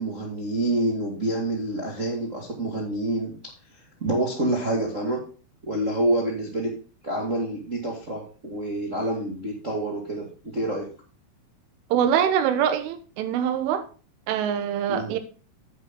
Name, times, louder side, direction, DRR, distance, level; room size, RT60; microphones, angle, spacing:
voice 1, 0.0-3.3 4.0-5.2 5.7-6.7 7.0-10.2 10.5-10.8 14.9-15.1, right 1 dB, 65° right, 0.7 m, -27 dB
voice 2, 11.9-13.8 14.3-15.2, right 9 dB, 80° right, 3.6 m, -24 dB
10.5 x 7.7 x 3.8 m
omnidirectional pair, 5.6 m